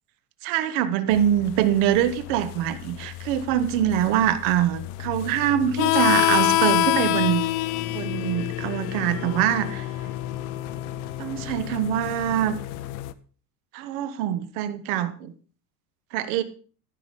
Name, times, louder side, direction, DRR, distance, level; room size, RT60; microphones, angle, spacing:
voice 1, 0.4-7.5 7.9-9.9 11.2-12.6 13.7-15.3 16.1-16.4, right 11 dB, 60° right, 12 dB, 1.1 m, -24 dB
sound 1, 1.1-13.1, left 13 dB, 60° left, 0.8 m, -36 dB
Harmonica, 5.8-11.0, left 16 dB, 90° left, 0.6 m, -25 dB
14.5 x 5.9 x 5.2 m, 0.40 s
cardioid pair, 155°, 45 cm